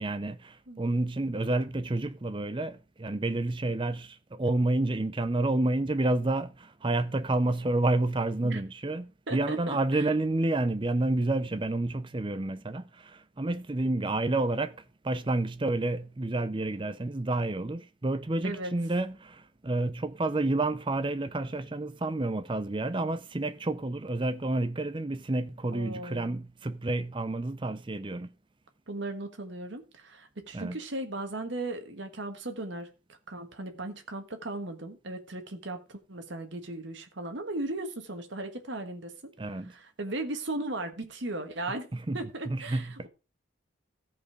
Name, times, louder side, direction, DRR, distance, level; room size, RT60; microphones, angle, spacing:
voice 1, 0.0-14.8 15.0-28.3 30.5-30.8 39.4-39.7 41.9-42.2 42.5-43.1, right 2 dB, 25° right, 0.5 m, -29 dB
voice 2, 9.3-10.0 18.4-18.7 25.7-26.3 28.9-32.9 33.3-39.3 39.7-41.9 42.1-43.1, right 2 dB, 60° right, 1.4 m, -37 dB
14.0 x 5.3 x 4.8 m
head